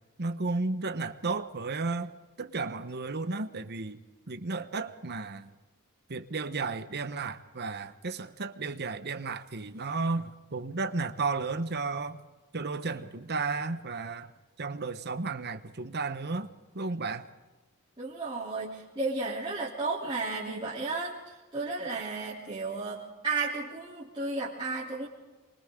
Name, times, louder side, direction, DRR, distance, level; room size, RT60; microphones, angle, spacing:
voice 1, 0.2-2.1 2.4-4.0 4.3-5.5 6.1-12.2 12.5-14.3 14.6-17.3, right 3 dB, 50° right, 1.1 m, -33 dB
voice 2, 18.0-25.1, right 3 dB, 25° right, 3.4 m, -33 dB
28.0 x 24.5 x 3.8 m
head